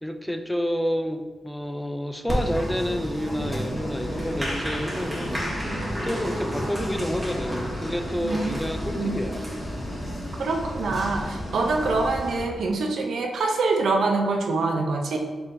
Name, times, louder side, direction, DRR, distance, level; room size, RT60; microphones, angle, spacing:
voice 1, 0.0-5.5 6.0-9.5, equal, 5° left, 5 dB, 0.3 m, -29 dB
Applause, 2.3-12.4, equal, 15° right, 1.1 m, -31 dB
sound 1, 3.4-12.8, left 2 dB, 75° left, 0.5 m, -38 dB
voice 2, 8.2-8.6 9.0-9.2 10.4-15.2, right 3 dB, 75° right, 2 dB, 0.5 m, -25 dB
4.2 x 3.6 x 2.7 m, 1.3 s
cardioid pair, 90°, 0 cm